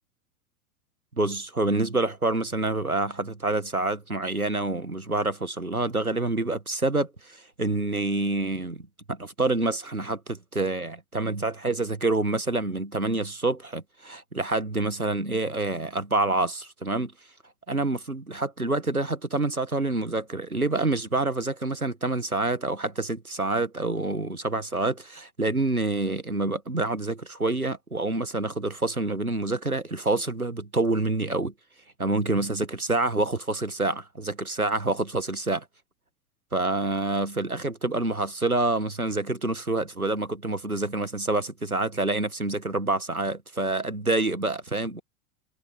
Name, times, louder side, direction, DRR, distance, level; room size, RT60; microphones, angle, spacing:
voice 1, 1.2-17.1 17.7-31.5 32.0-35.7 36.5-45.0, right 2 dB, 90° right, 1.9 m, -27 dB
figure-of-eight pair, 90°, 42 cm